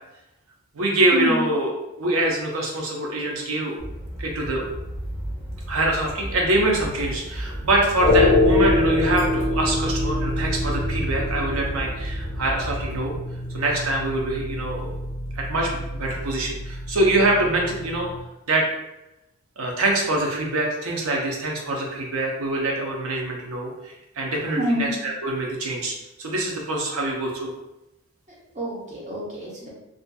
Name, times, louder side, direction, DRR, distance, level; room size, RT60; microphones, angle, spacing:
voice 1, 0.7-1.7 2.0-3.8 4.2-4.7 5.7-13.1 13.5-15.0 15.4-18.1 18.5-18.7 19.6-27.5, right 2 dB, 85° right, 0 dB, 0.6 m, -24 dB
sound 1, 3.8-13.2, equal, 10° right, 0.8 m, -33 dB
sound 2, 8.0-18.2, left 2 dB, 50° left, 0.4 m, -25 dB
voice 2, 24.5-24.9 28.3-29.7, right 1 dB, 35° right, -5 dB, 0.8 m, -27 dB
2.5 x 2.5 x 2.2 m, 0.93 s
head